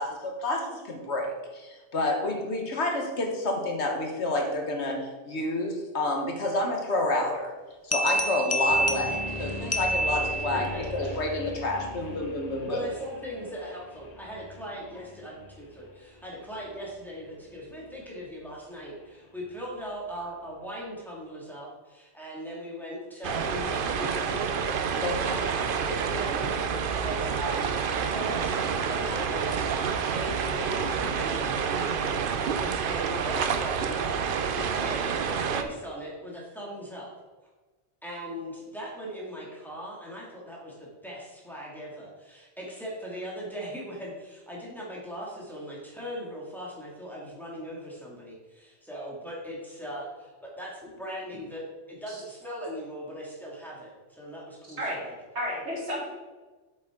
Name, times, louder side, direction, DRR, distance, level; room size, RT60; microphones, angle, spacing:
voice 1, 0.0-7.5 7.8-12.9 25.0-25.4, left 2 dB, 90° left, 2 dB, 1.7 m, -29 dB
sound 1, 7.9-10.9, right 1 dB, 20° left, 0.4 m, -28 dB
sound 2, 8.7-20.6, left 2 dB, 40° left, 1.2 m, -42 dB
voice 2, 10.7-11.1 12.6-27.8 28.1-37.1 38.0-55.1, equal, ahead, -5 dB, 2.2 m, -39 dB
sound 3, 23.2-35.6, right 6 dB, 60° right, 0.7 m, -28 dB
voice 3, 55.3-56.1, equal, 85° right, -5 dB, 3.2 m, -32 dB
7.8 x 7.3 x 3.7 m, 1.3 s
omnidirectional pair, 1.1 m